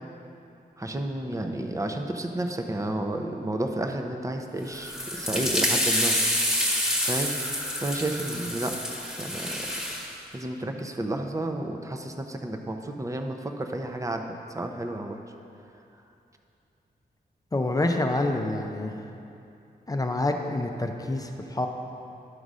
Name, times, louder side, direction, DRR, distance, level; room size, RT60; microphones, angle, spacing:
voice 1, 0.8-6.2 7.0-7.3 7.8-8.7 9.2-9.6 10.3-15.2, right 1 dB, 20° right, 4 dB, 0.7 m, -31 dB
sound 1, 4.7-10.1, equal, 5° right, 1.4 m, -27 dB
voice 2, 17.5-18.9 19.9-21.7, left 2 dB, 20° left, 3 dB, 0.6 m, -27 dB
11.0 x 4.0 x 6.2 m, 2.7 s
wide cardioid pair, 95°, 17 cm